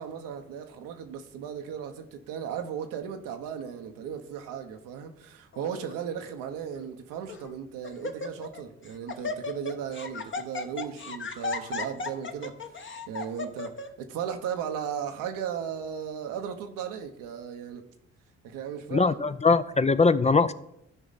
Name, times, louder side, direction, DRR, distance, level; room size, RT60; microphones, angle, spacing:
voice 1, 0.0-12.8 13.1-17.8 18.4-19.3, right 8 dB, 80° right, 1.0 m, -36 dB
Laughter, 5.5-5.9 6.7-6.8 7.3-7.6 7.8-8.6 8.8-13.9, left 4 dB, 35° left, 1.1 m, -35 dB
voice 2, 18.9-20.5, left 4 dB, 20° left, 0.5 m, -21 dB
13.5 x 5.0 x 4.1 m
hypercardioid pair, 55°, 33 cm